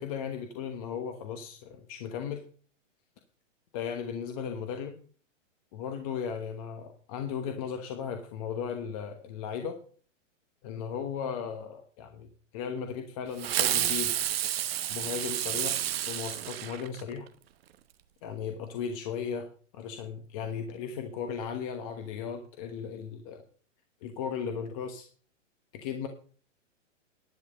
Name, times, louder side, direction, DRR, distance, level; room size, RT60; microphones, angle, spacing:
voice 1, 0.0-2.4 3.7-5.0 5.7-9.8 10.6-14.1 14.9-15.8 16.1-17.3 18.2-23.4 24.0-25.1 25.7-26.1, left 7 dB, 30° left, 5 dB, 1.2 m, -36 dB
Fireworks, 13.4-17.3, right 12 dB, 50° right, 1.0 m, -30 dB
11.0 x 9.1 x 5.3 m, 0.41 s
hypercardioid pair, 170°, 38 cm